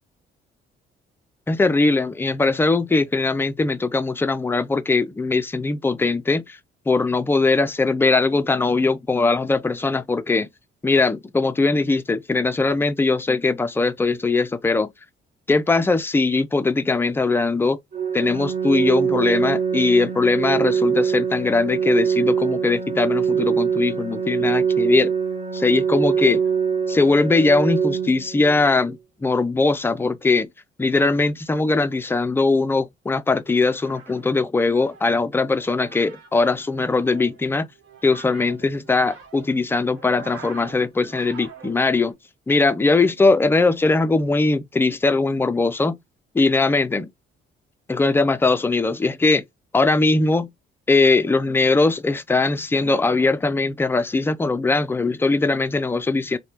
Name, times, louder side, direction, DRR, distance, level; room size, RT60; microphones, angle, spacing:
voice 1, 1.5-6.6 6.9-10.5 10.8-14.9 15.5-17.8 18.1-25.1 25.5-26.4 26.9-30.5 30.8-37.6 38.0-42.1 42.5-46.0 46.3-47.1 47.9-49.4 49.7-50.5 50.9-56.4, left 3 dB, 10° left, 0.3 m, -20 dB
Organ, 17.9-28.9, right 6 dB, 40° right, 1.0 m, -23 dB
sound 1, 33.4-42.1, right 5 dB, 85° right, 1.0 m, -45 dB
3.2 x 2.1 x 2.8 m
cardioid pair, 90°, 20 cm